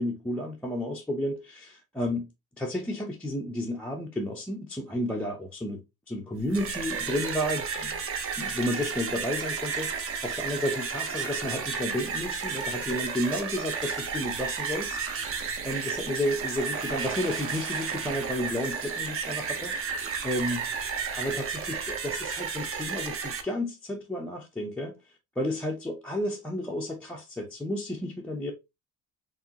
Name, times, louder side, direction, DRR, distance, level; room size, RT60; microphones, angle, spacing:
voice 1, 0.0-2.2 2.6-5.8 6.1-8.0 8.4-19.9 20.2-20.7 21.1-24.9 25.4-28.5, left 1 dB, 5° left, 0.4 m, -32 dB
sound 1, 6.4-23.4, right 6 dB, 40° right, 0.7 m, -32 dB
4.9 x 3.0 x 2.8 m
cardioid pair, 160°, 33 cm